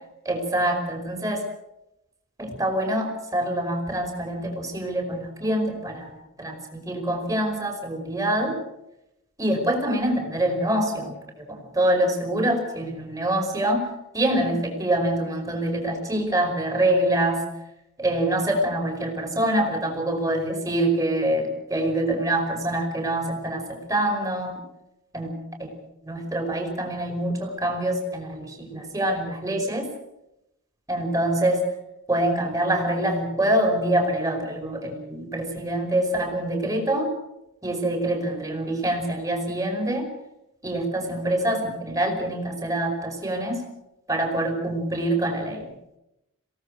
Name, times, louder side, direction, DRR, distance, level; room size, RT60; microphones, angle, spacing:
voice 1, 0.3-1.4 2.4-6.1 6.4-8.5 9.4-11.2 11.5-13.9 14.1-17.4 18.0-24.5 25.1-25.7 26.0-29.9 30.9-31.7 32.1-37.1 37.6-40.0 40.6-43.6 44.1-45.7, right 1 dB, 15° right, 2 dB, 5.4 m, -25 dB
27.5 x 18.0 x 6.5 m, 0.87 s
head